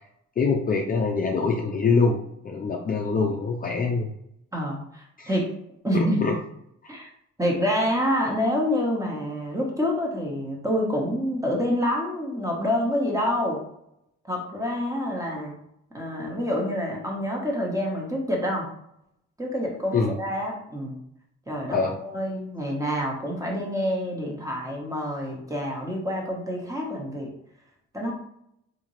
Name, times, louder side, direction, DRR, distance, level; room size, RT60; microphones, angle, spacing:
voice 1, 0.4-4.1 5.2-5.3 5.9-6.4 19.9-20.2 21.7-22.0, left 4 dB, 30° left, 0 dB, 0.5 m, -24 dB
voice 2, 4.5-5.5 5.8-6.2 6.9-7.1 7.4-13.6 14.3-15.5 15.9-18.7 19.4-21.0 21.5-27.3 27.9-28.1, equal, 10° right, -1 dB, 1.1 m, -27 dB
3.6 x 2.7 x 3.1 m, 0.76 s
cardioid pair, 90°, 30 cm